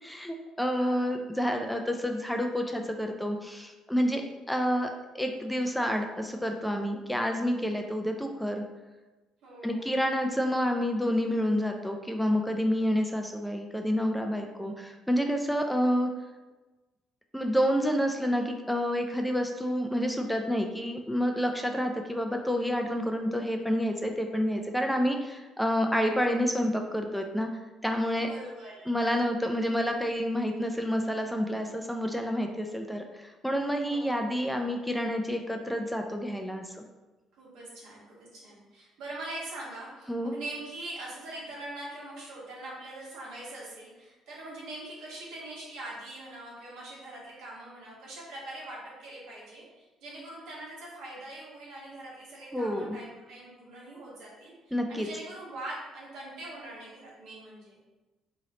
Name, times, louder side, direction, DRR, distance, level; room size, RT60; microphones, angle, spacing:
voice 1, 0.0-4.2 4.5-8.6 9.6-16.1 17.3-27.5 27.8-28.3 28.9-36.8 40.1-40.3 52.5-53.0 54.7-55.1, equal, 5° left, 3 dB, 0.4 m, -29 dB
voice 2, 0.7-1.2 9.4-10.0 28.2-29.2 33.8-34.6 37.4-57.8, right 1 dB, 75° right, -5 dB, 1.5 m, -43 dB
3.1 x 2.9 x 3.8 m, 1.2 s
supercardioid pair, 80°, 0 cm